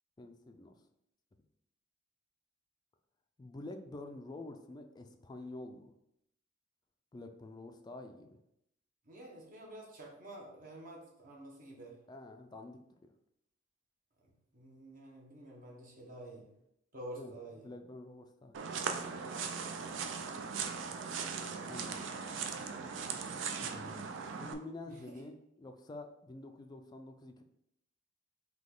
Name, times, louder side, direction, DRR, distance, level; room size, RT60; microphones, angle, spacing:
voice 1, 0.2-0.8 3.4-5.9 7.1-8.4 12.1-12.8 17.2-17.3 17.6-18.7 21.6-22.1 23.6-24.1 24.4-27.4, left 2 dB, 20° left, 6 dB, 0.3 m, -48 dB
voice 2, 9.0-11.9 14.2-16.5 16.9-17.7 24.9-25.2, right 1 dB, 45° right, -2 dB, 1.1 m, -49 dB
sound 1, 18.5-24.5, right 5 dB, 70° right, 0.4 m, -39 dB
3.9 x 2.9 x 3.7 m, 0.79 s
head